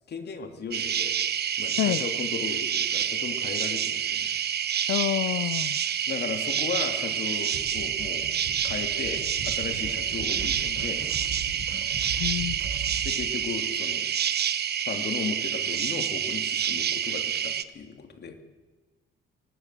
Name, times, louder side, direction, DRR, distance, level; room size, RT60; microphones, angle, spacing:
voice 1, 0.1-1.2 1.5-4.3 6.1-8.3 8.6-11.0 13.0-14.0 14.9-18.4, left 5 dB, 55° left, 6 dB, 3.2 m, -36 dB
sound 1, 0.7-17.6, right 9 dB, 55° right, 1.1 m, -28 dB
voice 2, 4.9-5.8 12.2-12.6, left 14 dB, 80° left, 16 dB, 0.7 m, -27 dB
sound 2, 7.5-13.1, right 5 dB, 80° right, 7.1 m, -39 dB
24.0 x 18.5 x 7.7 m, 1.3 s
cardioid pair, 90°, 20 cm